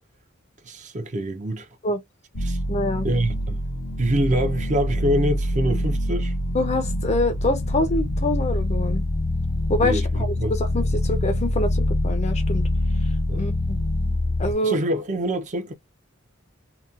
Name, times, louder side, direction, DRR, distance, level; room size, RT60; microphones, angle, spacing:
voice 1, 0.6-1.7 2.4-2.6 3.0-3.6 4.0-6.3 9.8-10.6 13.3-13.5 14.6-15.7, equal, 35° right, 0.6 m, -25 dB
sound 1, 2.3-14.5, left 1 dB, 85° left, 0.8 m, -25 dB
voice 2, 2.7-3.1 6.5-9.0 9.7-12.6 13.3-13.5 14.4-14.8, left 2 dB, 35° left, 0.6 m, -25 dB
2.8 x 2.2 x 2.4 m
head